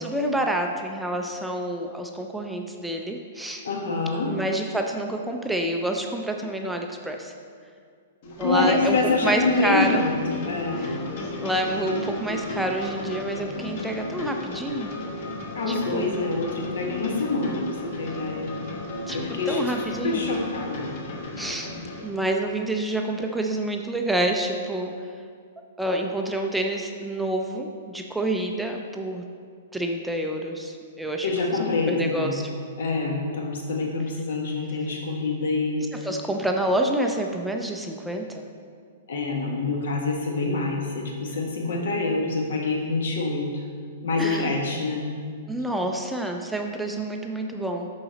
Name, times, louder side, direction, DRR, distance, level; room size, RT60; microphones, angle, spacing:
voice 1, 0.0-3.6 4.3-7.3 8.4-10.1 10.7-11.0 11.4-14.9 15.7-16.2 19.1-20.2 21.4-21.7 22.0-24.9 25.8-29.2 29.7-32.4 35.9-38.4 44.2-44.5 45.5-47.9, right 1 dB, 5° right, 2 dB, 0.3 m, -28 dB
voice 2, 3.6-4.3 8.4-10.9 15.5-18.5 19.1-19.6 20.0-20.9 31.2-32.4 32.8-35.8 39.1-43.6 44.0-45.0, left 3 dB, 85° left, 1 dB, 1.4 m, -26 dB
sound 1, 8.2-22.1, left 2 dB, 45° left, 1.0 m, -34 dB
11.0 x 3.9 x 4.0 m, 2.1 s
hypercardioid pair, 170°, 0 cm